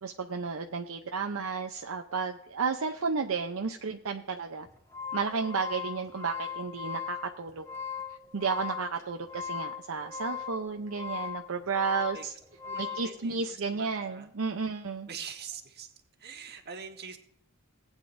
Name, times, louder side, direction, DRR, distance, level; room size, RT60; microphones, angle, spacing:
voice 1, 0.0-4.7 5.1-7.6 8.3-12.3 12.8-15.1, right 5 dB, 70° right, 4 dB, 0.7 m, -32 dB
sound 1, 4.7-13.1, left 7 dB, 15° left, 1.7 m, -38 dB
voice 2, 11.9-12.2 12.6-14.3 15.1-15.9 16.2-17.2, right 6 dB, 50° right, 4 dB, 1.3 m, -44 dB
18.5 x 9.0 x 2.6 m, 0.71 s
head